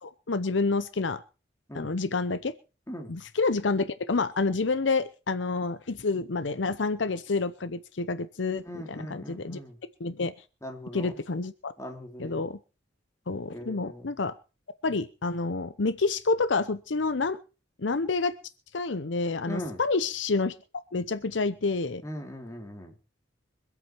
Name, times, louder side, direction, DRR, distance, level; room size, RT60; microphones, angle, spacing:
voice 1, 0.0-1.2 1.7-2.5 3.1-9.6 10.0-10.3 10.9-11.7 12.2-12.6 13.3-14.3 14.8-17.4 17.8-18.3 18.7-20.5 20.9-22.0, left 3 dB, 70° left, 13 dB, 0.8 m, -28 dB
voice 2, 8.6-9.8 10.6-11.2 11.8-12.4 13.5-14.1 19.5-19.8 22.0-22.9, equal, 15° left, 3 dB, 2.9 m, -39 dB
25.0 x 8.4 x 4.5 m, 0.34 s
head